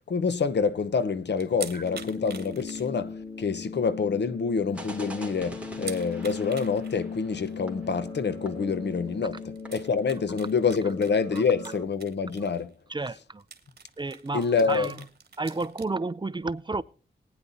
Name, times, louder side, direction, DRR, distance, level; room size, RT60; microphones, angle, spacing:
voice 1, 0.1-12.7 14.3-14.9, left 5 dB, 75° left, 0.9 m, -27 dB
sound 1, 1.4-3.3 3.7-3.8 4.2-4.3 4.6-4.7 5.8-7.0 7.5-7.6 8.9-9.0 9.6-12.7 13.0-13.1 13.4-15.9, right 5 dB, 60° right, 1.8 m, -45 dB
sound 2, 1.8-11.8, left 5 dB, 25° left, 2.7 m, -38 dB
sound 3, 4.7-9.1 9.4-9.5 9.7-9.9, right 1 dB, 5° right, 2.8 m, -45 dB
voice 2, 12.9-13.4 14.0-15.1 15.4-16.8, right 3 dB, 25° right, 0.6 m, -31 dB
20.0 x 9.8 x 2.7 m
wide cardioid pair, 100°, 18 cm